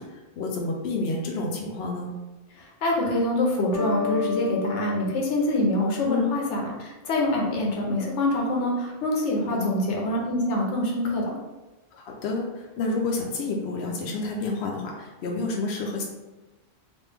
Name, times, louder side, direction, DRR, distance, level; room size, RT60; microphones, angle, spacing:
voice 1, 0.0-2.2 6.0-6.3 9.5-9.9 11.9-16.0, left 3 dB, 70° left, 0 dB, 0.8 m, -29 dB
voice 2, 2.8-11.4, left 1 dB, 90° left, -1 dB, 1.1 m, -25 dB
sound 1, 3.7-6.5, left 5 dB, 35° left, 0.6 m, -32 dB
3.2 x 2.5 x 3.3 m, 1.1 s
omnidirectional pair, 1.2 m